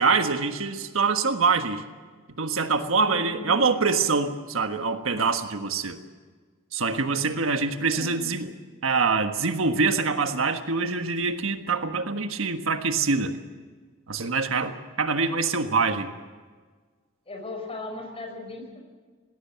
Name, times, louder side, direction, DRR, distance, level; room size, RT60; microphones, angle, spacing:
voice 1, 0.0-1.8 2.4-6.0 6.7-8.5 8.8-13.4 14.1-16.1, right 4 dB, 70° right, 7 dB, 1.5 m, -25 dB
voice 2, 3.0-3.6 7.9-8.2 17.3-18.8, left 2 dB, 30° left, 3 dB, 5.2 m, -37 dB
19.5 x 17.5 x 8.6 m, 1.5 s
head